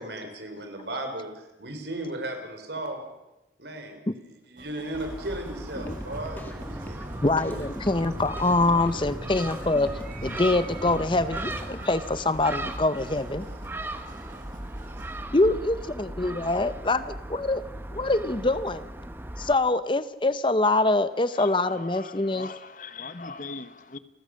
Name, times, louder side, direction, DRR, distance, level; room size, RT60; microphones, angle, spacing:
voice 1, 0.0-3.0 3.6-7.1 7.4-7.6 8.4-8.5, right 1 dB, 75° right, 5 dB, 4.1 m, -36 dB
sound 1, 4.6-15.2, right 2 dB, 50° right, 1.6 m, -48 dB
Gull seagull, 4.9-19.5, right 1 dB, 10° right, 1.0 m, -38 dB
sound 2, 5.8-11.7, equal, 10° left, 2.0 m, -39 dB
voice 2, 7.2-9.9 10.2-13.5 15.3-17.6 17.9-18.9 19.4-22.5, left 2 dB, 25° left, 13 dB, 0.7 m, -24 dB
voice 3, 21.3-24.0, left 4 dB, 45° left, 13 dB, 1.0 m, -40 dB
29.0 x 15.0 x 6.4 m, 0.98 s
head